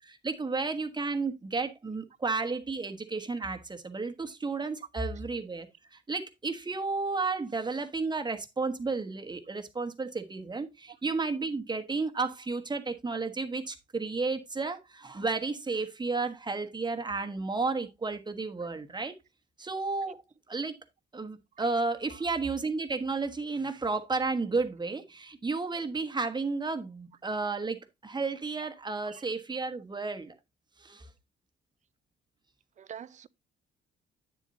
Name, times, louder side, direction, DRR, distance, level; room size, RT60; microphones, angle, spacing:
voice 1, 0.0-19.1 19.6-20.2 20.5-20.8 21.1-27.8 28.0-30.3 30.8-31.1, right 3 dB, 20° right, 1.3 m, -32 dB
voice 2, 32.8-33.3, right 9 dB, 40° right, 0.5 m, -45 dB
9.2 x 7.3 x 2.7 m
cardioid pair, 90°, 20 cm